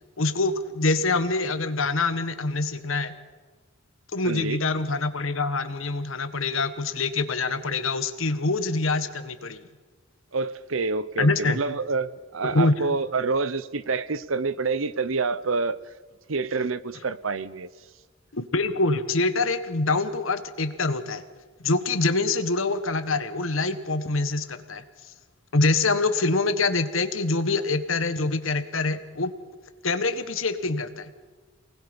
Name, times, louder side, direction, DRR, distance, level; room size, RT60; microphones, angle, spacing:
voice 1, 0.2-3.1 4.1-9.6 11.2-11.6 12.4-12.7 18.3-21.2 21.6-24.8 25.5-29.3 29.8-31.1, left 3 dB, 80° left, 10 dB, 1.4 m, -25 dB
voice 2, 4.2-4.6 10.3-15.8 16.3-17.7, right 4 dB, 85° right, 16 dB, 0.8 m, -27 dB
28.5 x 19.5 x 5.3 m, 1.3 s
head